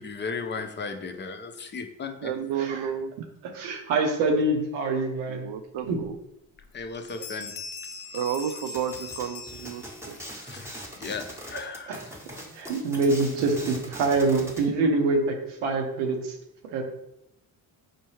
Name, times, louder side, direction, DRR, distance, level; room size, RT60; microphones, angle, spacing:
voice 1, 0.0-2.3 6.7-7.5 10.2-12.0, left 4 dB, 25° left, 6 dB, 0.4 m, -36 dB
voice 2, 2.2-3.1 5.3-6.2 8.1-10.5 14.2-14.7, right 8 dB, 55° right, 9 dB, 0.5 m, -32 dB
voice 3, 3.5-5.4 5.8-6.0 12.6-16.3 16.7-16.8, right 3 dB, 85° right, 2 dB, 0.8 m, -25 dB
Bell, 6.6-6.8 7.1-10.2, left 5 dB, 70° left, 0.7 m, -41 dB
sound 1, 8.7-14.7, equal, 5° right, 0.8 m, -41 dB
4.3 x 2.2 x 3.1 m, 0.81 s
supercardioid pair, 60°, 47 cm